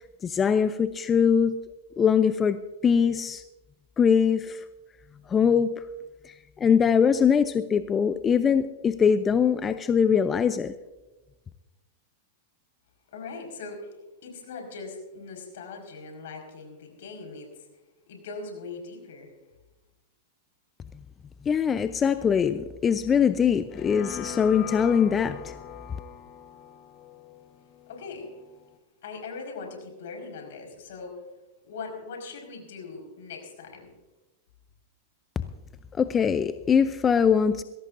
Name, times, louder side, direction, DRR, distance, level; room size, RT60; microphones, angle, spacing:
voice 1, 0.2-1.6 2.0-3.4 4.0-4.6 5.3-5.7 6.2-6.3 6.6-10.7 21.5-25.5 36.0-37.6, left 7 dB, 25° left, 12 dB, 0.6 m, -22 dB
voice 2, 13.1-13.9 14.2-17.7 18.1-19.3 27.9-28.3 29.0-31.1 31.6-33.9, left 4 dB, 70° left, 2 dB, 5.0 m, -40 dB
sound 1, 23.7-28.8, left 10 dB, 40° left, 1.3 m, -42 dB
22.0 x 16.5 x 2.6 m, 1.1 s
hypercardioid pair, 115°, 0 cm